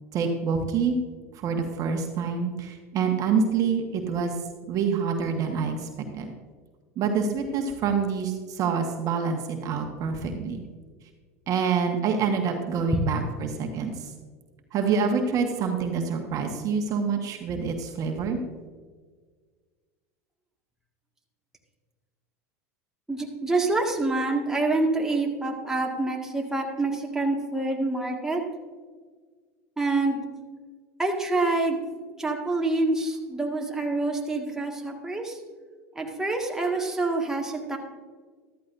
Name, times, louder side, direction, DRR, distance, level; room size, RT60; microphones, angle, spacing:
voice 1, 0.1-1.0 1.4-4.3 4.7-6.3 7.0-10.6 11.5-13.9 14.7-18.4, right 5 dB, 45° right, 3 dB, 1.4 m, -26 dB
voice 2, 23.1-28.4 29.8-30.2 31.0-31.8 32.2-35.4 36.0-37.8, right 2 dB, 5° right, 0 dB, 1.8 m, -26 dB
14.0 x 13.0 x 2.6 m, 1.5 s
hypercardioid pair, 90°, 8 cm